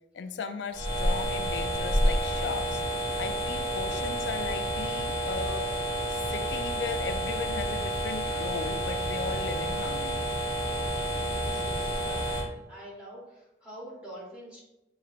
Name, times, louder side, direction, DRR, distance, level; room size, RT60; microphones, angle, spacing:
voice 1, 0.1-2.8 3.2-5.7 6.1-10.3, left 5 dB, 65° left, 9 dB, 0.3 m, -37 dB
sound 1, 0.7-12.4, equal, 25° left, 0.9 m, -29 dB
voice 2, 11.2-14.6, right 1 dB, 5° right, -7 dB, 1.2 m, -46 dB
5.7 x 3.1 x 2.4 m, 0.95 s
head